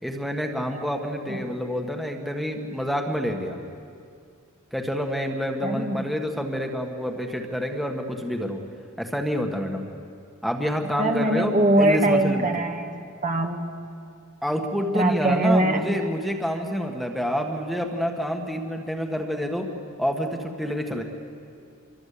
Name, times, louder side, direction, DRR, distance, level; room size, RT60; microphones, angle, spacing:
voice 1, 0.0-3.6 4.7-8.6 9.0-9.9 10.4-12.5 14.4-19.7 20.0-21.0, equal, ahead, 2 dB, 1.7 m, -28 dB
voice 2, 5.6-6.0 11.0-13.7 14.9-15.8, right 1 dB, 35° right, 3 dB, 1.6 m, -22 dB
26.5 x 24.0 x 8.6 m, 2.4 s
head